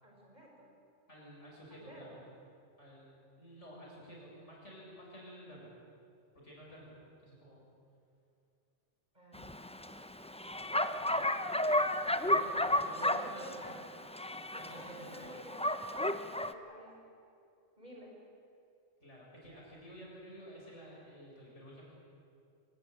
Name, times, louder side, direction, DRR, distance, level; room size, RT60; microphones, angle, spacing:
voice 1, 0.0-0.7 1.7-2.3 9.1-9.7 10.8-11.7 13.0-13.9 14.6-17.1 17.8-18.2, right 1 dB, 35° right, -2 dB, 5.5 m, -52 dB
voice 2, 1.1-2.2 2.8-3.0 3.4-5.7 6.3-6.9 7.2-7.7 12.2-13.8 14.5-15.3 19.0-21.8, equal, 75° left, -4 dB, 7.6 m, -51 dB
Bark, 9.3-16.5, left 1 dB, 5° left, 0.5 m, -33 dB
23.5 x 20.0 x 8.7 m, 2.5 s
omnidirectional pair, 1.2 m